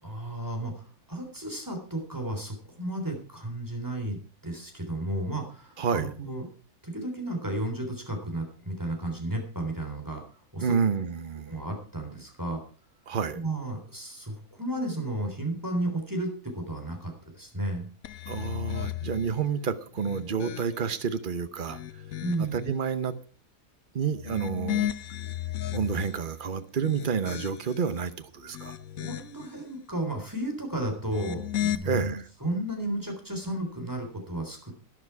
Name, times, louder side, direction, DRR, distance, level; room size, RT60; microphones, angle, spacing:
voice 1, 0.0-6.4 6.8-10.2 10.5-10.8 11.5-12.6 13.3-17.9 22.2-22.7 29.0-34.7, right 1 dB, 10° right, 3.6 m, -33 dB
voice 2, 5.8-6.1 10.6-11.6 13.1-13.4 18.3-22.0 22.5-23.1 23.9-24.9 25.7-28.8 31.8-32.2, right 6 dB, 40° right, 1.0 m, -29 dB
sound 1, 18.0-19.3 19.9-21.0 21.5-22.6 24.1-26.2 26.7-27.9 28.4-29.5 31.0-31.8, left 12 dB, 65° left, 1.2 m, -35 dB
12.5 x 11.0 x 4.7 m
omnidirectional pair, 1.6 m